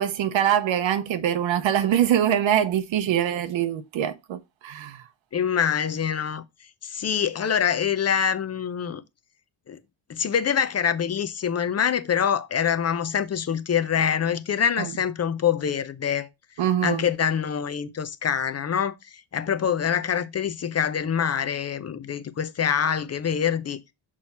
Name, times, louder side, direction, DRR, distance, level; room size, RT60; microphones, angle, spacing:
voice 1, 0.0-5.0 14.8-14.9 16.6-17.0, right 10 dB, 70° right, 0.8 m, -24 dB
voice 2, 5.3-6.4 6.8-9.0 9.7-9.8 10.1-16.3 16.8-23.8, left 8 dB, 35° left, 0.6 m, -25 dB
6.0 x 4.6 x 4.2 m
cardioid pair, 110°, 47 cm